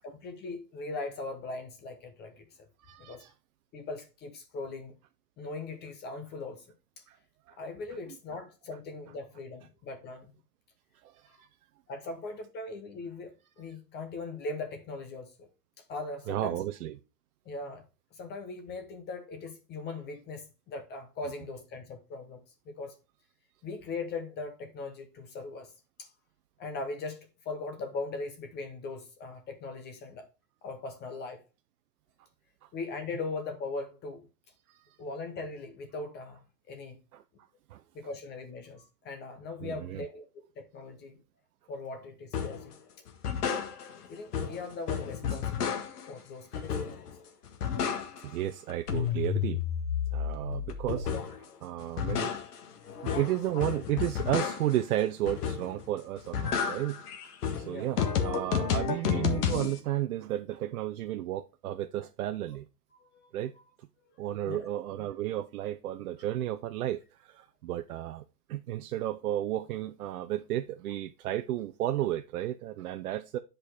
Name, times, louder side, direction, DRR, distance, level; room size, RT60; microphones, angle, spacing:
voice 1, 0.0-2.5 3.0-3.2 3.7-4.9 5.4-6.6 7.6-10.3 11.3-11.4 11.9-15.5 15.9-16.6 17.4-17.8 18.1-22.4 22.7-22.9 23.6-25.7 26.0-26.1 26.6-30.3 30.6-31.4 32.7-34.3 35.0-36.4 36.7-37.0 37.9-40.3 40.6-41.2 41.7-42.7 43.9-45.8 46.1-47.1 57.6-58.0 63.0-63.3 64.5-64.7, left 3 dB, 20° left, 0.9 m, -40 dB
voice 2, 2.8-3.3 7.1-7.2 7.5-7.6 11.0-11.5 16.3-17.0 32.6-32.7 34.7-35.0 37.1-37.2 37.7-37.8 39.6-40.1 48.2-49.6 50.1-51.1 51.4-52.3 53.0-57.3 57.6-62.7 63.3-63.5 64.2-68.2 68.5-73.4, right 13 dB, 65° right, 0.7 m, -33 dB
sound 1, 42.3-42.6 43.1-44.1 44.3-46.1 46.5-47.2 47.4-48.4 48.7-51.4 51.8-54.8 55.3-55.9 56.2-59.8, left 7 dB, 75° left, 1.7 m, -31 dB
8.1 x 5.1 x 4.4 m
hypercardioid pair, 135°, 47 cm